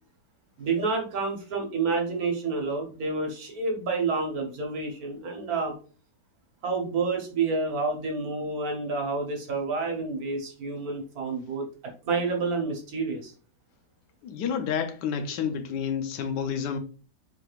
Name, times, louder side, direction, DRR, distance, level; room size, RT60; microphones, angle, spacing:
voice 1, 0.6-5.7 6.6-11.6 12.1-13.3, right 4 dB, 60° right, 1.3 m, -29 dB
voice 2, 14.2-16.8, left 7 dB, 80° left, 1.2 m, -29 dB
4.5 x 3.3 x 2.3 m
omnidirectional pair, 1.9 m